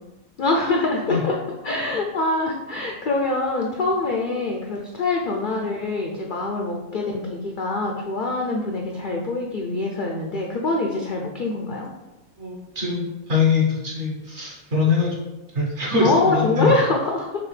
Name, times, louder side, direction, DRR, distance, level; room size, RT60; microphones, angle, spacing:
voice 1, 0.4-1.4 1.6-11.9 16.0-17.5, left 2 dB, 85° left, 0 dB, 0.4 m, -24 dB
voice 2, 12.4-15.2 15.5-16.7, left 4 dB, 55° right, -4 dB, 1.2 m, -23 dB
6.1 x 2.4 x 3.2 m, 1.0 s
omnidirectional pair, 1.5 m